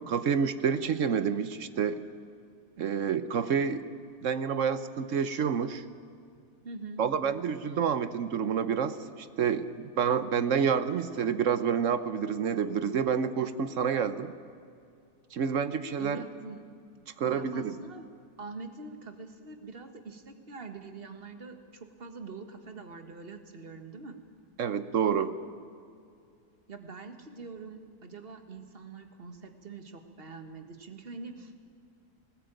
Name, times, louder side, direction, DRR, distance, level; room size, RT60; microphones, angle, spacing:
voice 1, 0.0-2.0 2.8-3.8 4.2-5.8 7.0-9.7 10.0-14.3 15.3-16.2 17.2-17.7 24.6-25.3, right 7 dB, 60° right, 12 dB, 1.0 m, -28 dB
voice 2, 6.6-7.1 16.0-16.6 17.2-18.1 18.4-24.2 26.7-31.6, right 3 dB, 35° right, 7 dB, 1.7 m, -44 dB
19.0 x 19.0 x 9.0 m, 2.4 s
omnidirectional pair, 1.8 m